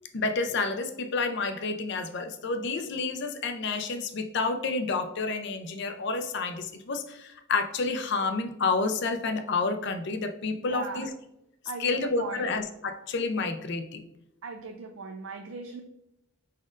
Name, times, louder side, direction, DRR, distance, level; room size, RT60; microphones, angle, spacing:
voice 1, 0.1-11.1 11.8-14.0, left 3 dB, 50° left, 7 dB, 0.5 m, -29 dB
voice 2, 10.5-11.1 11.7-12.6 14.4-15.8, right 4 dB, 65° right, 3 dB, 0.4 m, -38 dB
4.9 x 4.2 x 2.5 m, 0.83 s
head